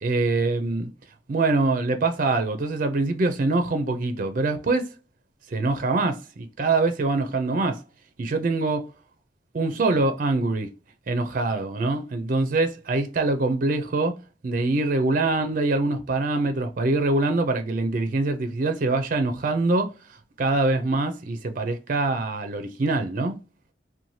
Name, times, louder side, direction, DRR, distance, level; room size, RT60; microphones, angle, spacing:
voice 1, 0.0-0.9 1.3-4.9 5.5-7.8 8.2-8.9 9.5-10.7 11.1-14.2 14.4-19.9 20.4-23.3, right 2 dB, 45° right, 0.4 m, -24 dB
2.7 x 2.2 x 3.0 m
head